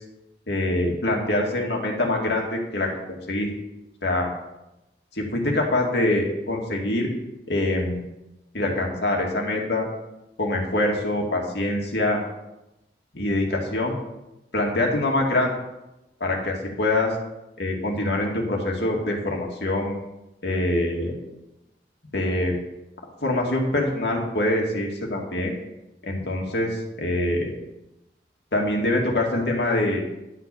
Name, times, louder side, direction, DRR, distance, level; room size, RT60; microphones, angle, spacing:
voice 1, 0.5-3.5 4.0-4.3 5.1-7.1 7.5-8.0 8.5-9.9 10.4-12.2 13.1-13.9 14.5-15.5 16.2-17.1 17.6-19.9 20.4-21.1 22.1-22.5 23.2-25.5 26.0-27.5 28.5-30.0, left 1 dB, 75° left, 0 dB, 2.3 m, -24 dB
11.5 x 5.9 x 7.1 m, 0.94 s
head